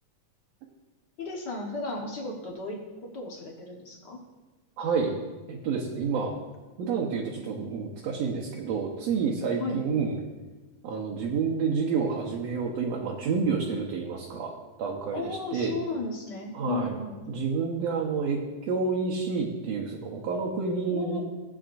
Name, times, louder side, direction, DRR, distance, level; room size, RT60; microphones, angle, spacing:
voice 1, 1.2-2.8 3.1-4.2 9.6-9.8 15.1-17.2 20.9-21.2, left 3 dB, 50° left, -1 dB, 1.3 m, -34 dB
voice 2, 4.8-5.2 5.5-6.3 6.8-10.2 10.8-14.5 14.8-15.8 16.5-17.0 17.3-21.2, right 5 dB, 70° right, -1 dB, 2.0 m, -29 dB
17.0 x 8.3 x 2.6 m, 1.2 s
omnidirectional pair, 3.4 m